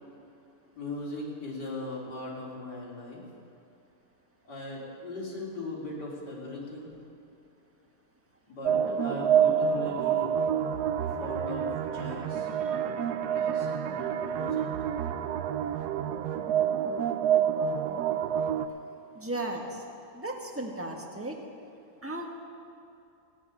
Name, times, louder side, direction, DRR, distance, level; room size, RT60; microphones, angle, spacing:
voice 1, 0.8-3.2 4.5-6.9 8.5-10.3 11.2-14.9, left 2 dB, 90° left, -5 dB, 3.8 m, -39 dB
sound 1, 8.7-18.7, right 8 dB, 75° right, 1.2 m, -28 dB
voice 2, 19.1-19.8 20.1-21.3 22.0-22.3, right 1 dB, 10° right, 1 dB, 1.4 m, -35 dB
16.5 x 9.0 x 9.5 m, 2.6 s
omnidirectional pair, 1.8 m